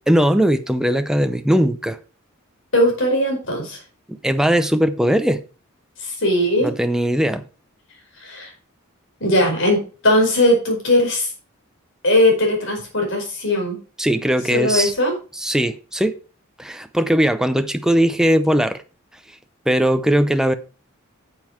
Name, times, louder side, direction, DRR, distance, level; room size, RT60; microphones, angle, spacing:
voice 1, 0.1-2.0 4.1-5.4 6.6-7.4 14.0-14.9 15.4-16.1 16.6-18.8 19.7-20.5, equal, 5° right, 0.6 m, -19 dB
voice 2, 2.7-3.8 6.0-6.7 8.2-8.5 9.2-11.3 12.0-13.8 14.5-15.1, left 1 dB, 60° left, 4.9 m, -19 dB
9.4 x 7.5 x 4.5 m
head